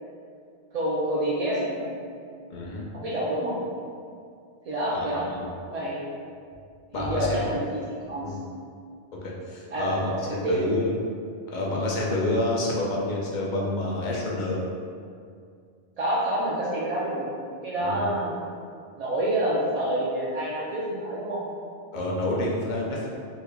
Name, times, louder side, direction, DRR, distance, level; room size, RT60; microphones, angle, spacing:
voice 1, 0.7-1.9 2.9-3.6 4.7-5.2 5.7-6.0 6.9-7.8 8.1-8.4 9.7-9.9 10.2-10.8 16.0-17.3 17.6-18.3 18.9-21.4, right 1 dB, 60° right, -7 dB, 0.4 m, -27 dB
voice 2, 2.5-2.9 4.9-5.5 6.9-7.4 8.2-8.3 9.2-10.9 11.5-14.6 17.8-18.0 21.9-23.1, left 1 dB, 55° left, -4 dB, 0.6 m, -28 dB
3.4 x 3.1 x 2.2 m, 2.3 s
omnidirectional pair, 1.1 m